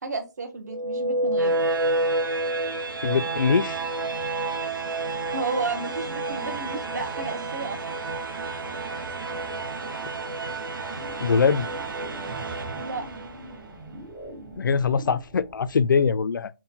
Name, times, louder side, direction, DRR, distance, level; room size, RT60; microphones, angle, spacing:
voice 1, 0.0-1.6 4.9-7.8 12.8-13.1, right 3 dB, 55° right, 0.9 m, -32 dB
sound 1, 0.7-13.7, right 2 dB, 85° right, 0.8 m, -29 dB
voice 2, 3.0-3.8 11.2-11.7 14.6-16.5, left 5 dB, 70° left, 0.4 m, -22 dB
sound 2, 10.9-16.0, right 1 dB, 5° right, 0.4 m, -42 dB
3.7 x 2.1 x 4.1 m
hypercardioid pair, 175°, 11 cm